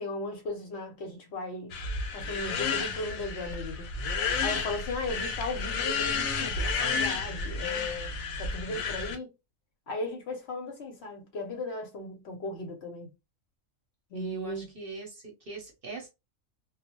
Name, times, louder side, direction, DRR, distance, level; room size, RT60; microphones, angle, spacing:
voice 1, 0.0-1.7 2.1-9.3 9.9-13.1 14.1-14.7, left 2 dB, 60° left, 0.8 m, -36 dB
sound 1, 1.7-9.2, left 5 dB, 80° left, 1.0 m, -31 dB
voice 2, 14.1-16.1, right 4 dB, 50° right, 0.8 m, -41 dB
2.3 x 2.0 x 2.9 m
omnidirectional pair, 1.4 m